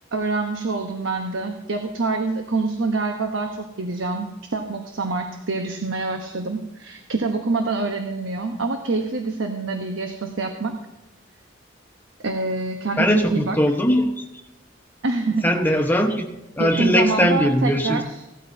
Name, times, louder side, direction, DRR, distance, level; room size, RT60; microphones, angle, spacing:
voice 1, 0.1-10.8 12.2-13.6 15.0-15.8 16.6-18.2, right 3 dB, 80° right, 4 dB, 1.1 m, -26 dB
voice 2, 13.0-14.2 15.4-16.3 16.6-18.0, equal, 10° left, 3 dB, 1.2 m, -20 dB
17.0 x 13.0 x 2.8 m, 0.97 s
head